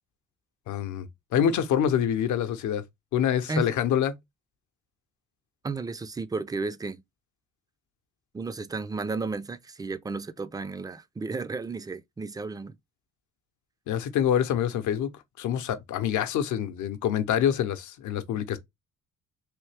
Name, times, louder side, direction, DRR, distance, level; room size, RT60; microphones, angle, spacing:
voice 1, 0.7-1.1 1.3-2.8 3.1-4.1 13.9-15.1 15.4-18.6, left 9 dB, 75° left, 0.7 m, -26 dB
voice 2, 5.6-7.0 8.3-12.8, right 3 dB, 15° right, 0.3 m, -33 dB
3.4 x 2.7 x 3.2 m
cardioid pair, 90°, 30 cm